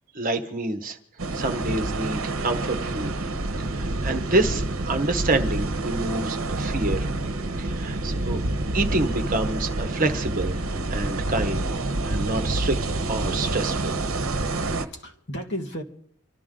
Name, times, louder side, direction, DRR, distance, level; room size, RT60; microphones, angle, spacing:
voice 1, 0.1-1.0 1.3-3.1 3.6-7.1 7.6-8.4 8.7-11.6 12.0-12.8 13.1-13.9, right 2 dB, 40° right, 7 dB, 1.2 m, -27 dB
sound 1, 1.2-14.8, right 2 dB, 70° right, 1.0 m, -28 dB
voice 2, 14.6-15.8, equal, 50° left, 3 dB, 1.5 m, -37 dB
27.0 x 12.5 x 3.8 m, 0.66 s
head